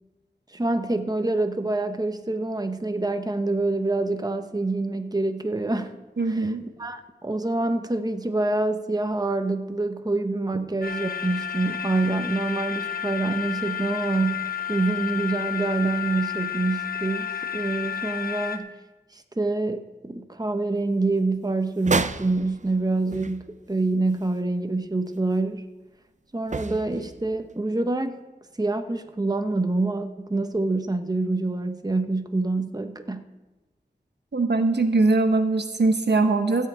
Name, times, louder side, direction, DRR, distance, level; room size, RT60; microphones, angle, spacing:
voice 1, 0.5-5.9 6.3-6.5 6.8-18.7 19.1-25.7 26.3-28.2 28.6-33.3, right 2 dB, 20° right, 8 dB, 0.9 m, -26 dB
voice 2, 6.2-6.6 34.3-36.7, right 3 dB, 75° right, 7 dB, 1.0 m, -21 dB
sound 1, 10.8-18.6, left 9 dB, 55° left, 1.0 m, -31 dB
sound 2, 21.8-23.9 24.2-24.3 26.5-27.5, right 4 dB, 45° right, 0.5 m, -30 dB
14.0 x 5.7 x 8.6 m, 1.1 s
wide cardioid pair, 60°, 18 cm